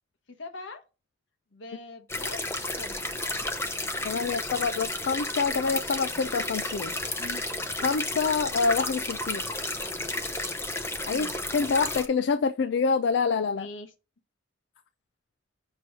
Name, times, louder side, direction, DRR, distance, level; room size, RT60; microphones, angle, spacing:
voice 1, 0.3-0.8 1.5-3.1 7.2-7.5 11.1-11.4 13.5-13.9, left 3 dB, 80° left, 1.1 m, -43 dB
sound 1, 2.1-12.1, left 2 dB, 15° left, 0.7 m, -32 dB
voice 2, 4.0-6.9 7.8-9.4 11.1-11.3 11.5-13.7, left 5 dB, 65° left, 0.4 m, -26 dB
6.2 x 3.0 x 5.4 m
head